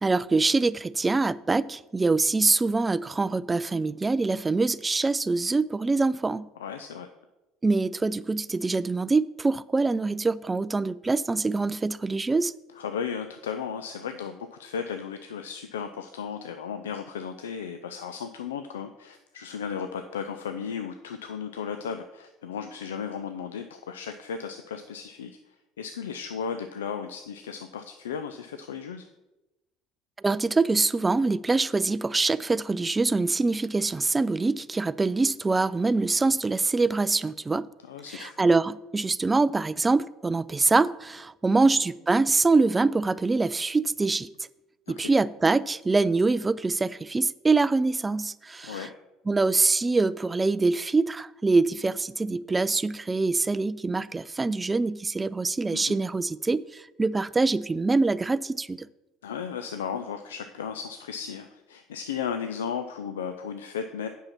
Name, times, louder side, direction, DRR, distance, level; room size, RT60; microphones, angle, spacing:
voice 1, 0.0-6.5 7.6-12.5 30.2-37.7 38.1-44.3 44.9-48.9 49.3-58.9, right 3 dB, 20° right, 0.3 m, -24 dB
voice 2, 6.6-7.1 12.8-29.0 37.8-38.4 44.9-45.1 48.6-48.9 55.7-56.0 59.2-64.1, left 7 dB, 80° left, 0.4 m, -35 dB
8.8 x 5.6 x 5.7 m
hypercardioid pair, 65°, 0 cm